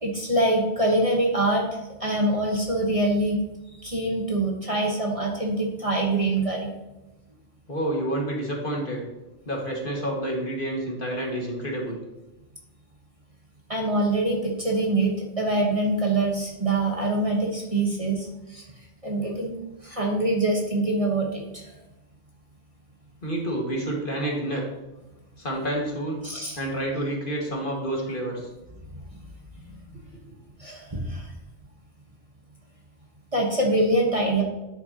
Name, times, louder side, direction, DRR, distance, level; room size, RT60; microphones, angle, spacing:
voice 1, 0.0-1.7 2.0-3.4 3.8-6.7 13.7-18.6 19.0-19.6 19.8-21.7 26.2-26.6 29.1-29.2 29.6-29.7 30.6-31.3 33.3-34.4, right 2 dB, 30° right, -1 dB, 1.3 m, -24 dB
voice 2, 7.7-9.0 9.5-12.0 23.2-24.6 25.4-26.2 26.6-28.5, right 1 dB, 45° left, -2 dB, 2.1 m, -29 dB
10.0 x 7.7 x 2.9 m, 0.99 s
omnidirectional pair, 1.2 m